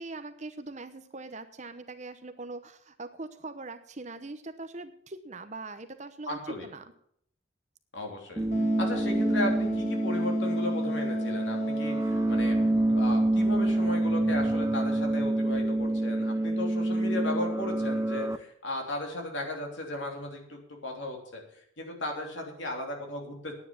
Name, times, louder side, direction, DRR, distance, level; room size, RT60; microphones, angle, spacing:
voice 1, 0.0-6.9, right 3 dB, 35° right, 9 dB, 0.9 m, -41 dB
voice 2, 6.3-6.7 7.9-8.4 8.8-12.6 12.9-21.4 21.8-23.5, left 2 dB, 65° left, 1 dB, 3.3 m, -36 dB
sound 1, 8.4-18.4, right 1 dB, 15° right, 0.5 m, -27 dB
Wind instrument woodwind instrument, 8.5-13.2, left 4 dB, 35° left, 1.0 m, -42 dB
9.8 x 9.7 x 7.2 m, 0.68 s
head